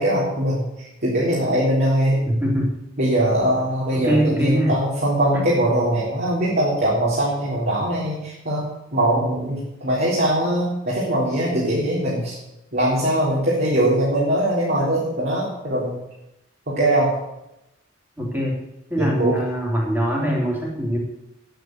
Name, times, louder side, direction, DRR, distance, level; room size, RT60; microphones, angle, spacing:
voice 1, 0.0-2.2 3.0-12.4 12.7-16.0 16.7-17.1 19.0-19.4, right 1 dB, 55° right, -6 dB, 3.9 m, -21 dB
voice 2, 2.3-2.7 3.9-4.7 5.3-5.4 9.2-9.5 18.2-18.6 18.9-21.0, equal, 10° right, -2 dB, 3.5 m, -23 dB
10.5 x 9.4 x 7.9 m, 0.88 s
head